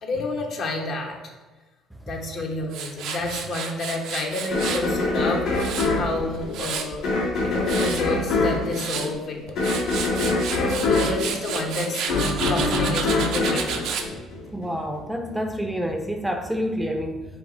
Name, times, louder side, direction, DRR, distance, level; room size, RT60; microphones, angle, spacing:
voice 1, 0.0-1.2 2.0-7.1 7.4-10.3 10.7-12.1 12.5-13.8, left 2 dB, 60° left, 1 dB, 0.9 m, -30 dB
Tools, 2.7-4.9 5.3-7.0 7.4-8.0 8.5-9.1 9.5-14.1, right 6 dB, 70° right, 0.5 m, -31 dB
sound 1, 4.5-14.7, left 3 dB, 80° left, 1.4 m, -24 dB
voice 2, 14.5-17.3, equal, 5° right, 4 dB, 0.5 m, -28 dB
5.5 x 2.0 x 4.0 m, 1.2 s
supercardioid pair, 75°, 0 cm